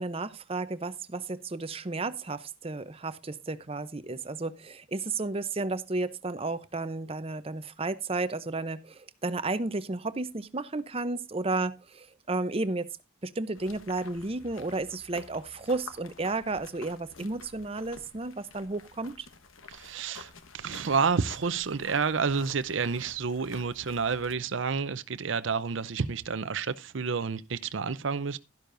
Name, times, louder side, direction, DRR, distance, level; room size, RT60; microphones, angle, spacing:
voice 1, 0.0-12.9 13.2-19.3, right 3 dB, 30° right, 0.6 m, -33 dB
sound 1, 13.5-24.4, left 4 dB, 75° left, 1.2 m, -50 dB
voice 2, 19.7-28.4, right 5 dB, 65° right, 0.6 m, -30 dB
12.0 x 11.5 x 2.6 m
head